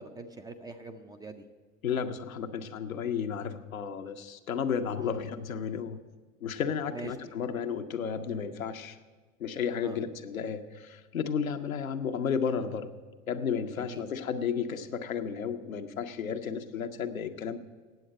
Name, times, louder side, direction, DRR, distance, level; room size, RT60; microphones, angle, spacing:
voice 1, 0.0-1.4 5.0-5.2 6.9-7.3 9.8-10.0 13.8-14.0, right 3 dB, 10° right, 6 dB, 0.4 m, -43 dB
voice 2, 1.8-6.0 6.4-9.0 9.4-12.9 13.3-17.6, left 7 dB, 85° left, 6 dB, 0.8 m, -33 dB
9.2 x 7.8 x 8.9 m, 1.4 s
hypercardioid pair, 90°, 40 cm